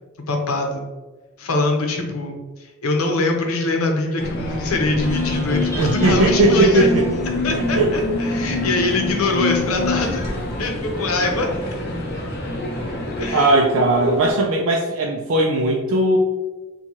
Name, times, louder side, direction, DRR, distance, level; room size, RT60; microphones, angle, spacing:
voice 1, 0.3-0.8 1.4-6.9 7.4-10.2 10.6-11.5 13.2-13.5, left 2 dB, 80° left, 2 dB, 0.7 m, -23 dB
sound 1, 4.2-13.3, left 1 dB, 50° left, 0.8 m, -30 dB
sound 2, 5.0-14.3, left 2 dB, 15° left, 0.6 m, -27 dB
voice 2, 5.8-7.1 7.5-7.9 13.3-16.2, right 2 dB, 65° right, -1 dB, 0.4 m, -18 dB
4.5 x 2.3 x 2.8 m, 1.2 s
head